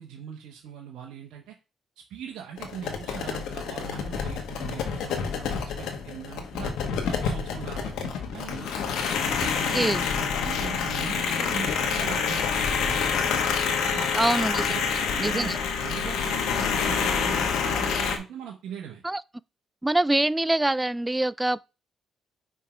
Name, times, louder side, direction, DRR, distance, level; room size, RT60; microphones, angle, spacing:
voice 1, 0.0-1.6 2.1-6.7 7.0-8.7 9.4-9.9 10.2-13.1 13.7-14.1 14.5-19.0, right 8 dB, 85° right, 1.2 m, -40 dB
sound 1, 2.6-18.2, left 6 dB, 85° left, 1.2 m, -27 dB
voice 2, 9.7-10.0 14.2-14.7 15.2-15.6 19.0-19.2 19.8-21.6, right 1 dB, 10° right, 0.3 m, -24 dB
5.6 x 3.7 x 5.0 m
cardioid pair, 90°, 0 cm